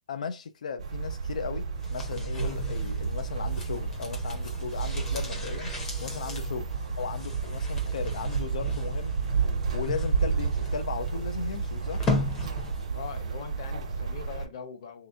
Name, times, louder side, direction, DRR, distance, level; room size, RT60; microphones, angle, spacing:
voice 1, 0.1-5.7 6.0-6.7 7.0-9.1 9.7-12.1, left 6 dB, 85° left, 0.4 m, -36 dB
sound 1, 0.8-14.5, right 5 dB, 70° right, 1.0 m, -31 dB
sound 2, 1.8-13.0 13.2-13.3, left 3 dB, 10° left, 0.6 m, -37 dB
voice 2, 12.9-15.1, left 7 dB, 45° left, 0.8 m, -42 dB
3.3 x 2.7 x 3.4 m
hypercardioid pair, 175°, 4 cm